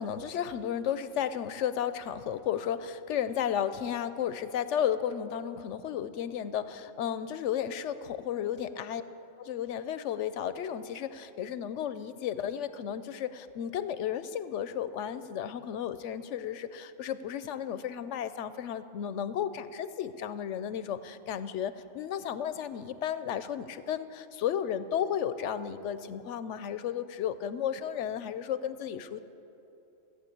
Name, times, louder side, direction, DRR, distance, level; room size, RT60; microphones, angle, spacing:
voice 1, 0.0-9.0 9.4-29.2, left 9 dB, 70° left, 13 dB, 0.8 m, -33 dB
15.0 x 8.4 x 8.5 m, 2.9 s
omnidirectional pair, 1.3 m